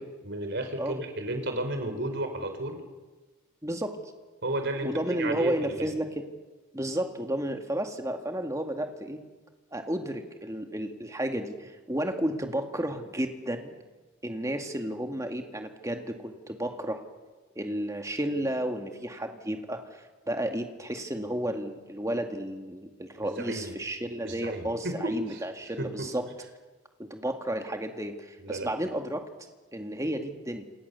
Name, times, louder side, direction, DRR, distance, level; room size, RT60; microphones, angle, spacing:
voice 1, 0.0-2.8 4.4-5.9 23.2-23.7 24.2-25.4 25.8-26.1 28.4-28.7, right 1 dB, 50° right, 6 dB, 4.5 m, -33 dB
voice 2, 3.6-4.0 4.8-6.2 6.7-9.2 9.7-13.7 14.2-17.0 17.6-26.3 27.0-29.3 29.7-30.7, right 1 dB, 15° right, 4 dB, 2.1 m, -32 dB
29.0 x 27.5 x 7.0 m, 1.3 s
head